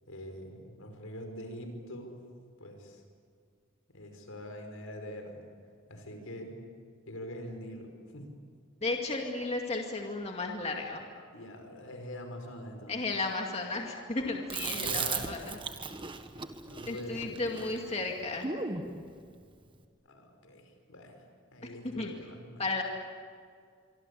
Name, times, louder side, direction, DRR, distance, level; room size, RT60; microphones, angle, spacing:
voice 1, 0.0-2.2 2.6-3.0 3.9-5.4 5.9-6.5 7.1-8.3 11.3-13.0 14.7-15.5 16.7-17.5 20.0-21.2 21.5-22.6, equal, 80° left, 5 dB, 5.3 m, -44 dB
voice 2, 8.8-11.0 12.9-15.6 16.9-18.5 22.0-22.1 22.6-22.8, left 3 dB, 30° left, 1 dB, 2.3 m, -34 dB
Chewing mastication, 14.5-18.9, right 5 dB, 25° right, 1.5 m, -37 dB
25.5 x 25.0 x 8.6 m, 2.1 s
head